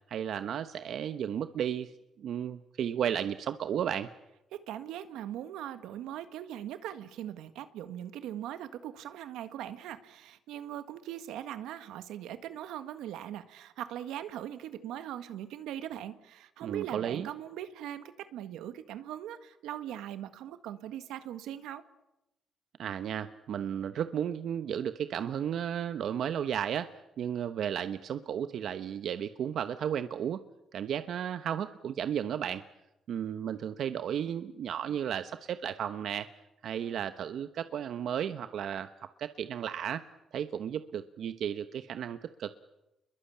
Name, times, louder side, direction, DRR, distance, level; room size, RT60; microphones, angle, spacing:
voice 1, 0.1-1.9 2.2-4.1 16.6-17.3 22.8-30.4 30.7-32.6 33.1-36.3 36.6-38.9 39.2-40.0 40.3-42.5, right 9 dB, 70° right, 10 dB, 1.0 m, -34 dB
voice 2, 4.5-21.8, right 11 dB, 90° right, 11 dB, 1.7 m, -40 dB
29.5 x 22.0 x 8.6 m, 0.93 s
cardioid pair, 90°, 0 cm